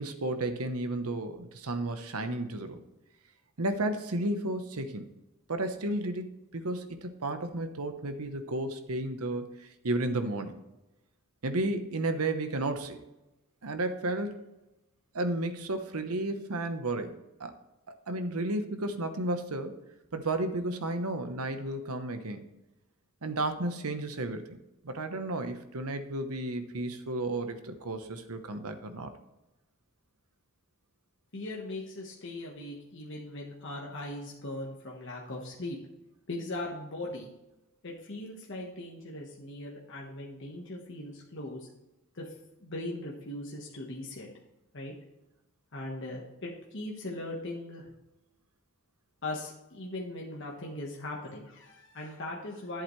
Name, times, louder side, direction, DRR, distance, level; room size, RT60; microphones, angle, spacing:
voice 1, 0.0-2.8 3.6-5.1 5.5-10.5 11.4-13.0 13.6-14.4 15.1-17.1 17.4-17.5 17.9-19.7 20.1-22.4 23.2-24.6 24.8-29.1, right 2 dB, 85° right, 8 dB, 1.0 m, -33 dB
voice 2, 31.3-35.8 36.3-37.3 37.8-41.7 42.1-42.3 42.6-44.3 44.7-44.9 45.7-47.9 49.2-52.8, left 1 dB, 55° left, -2 dB, 1.3 m, -39 dB
11.0 x 8.0 x 3.2 m, 0.96 s
head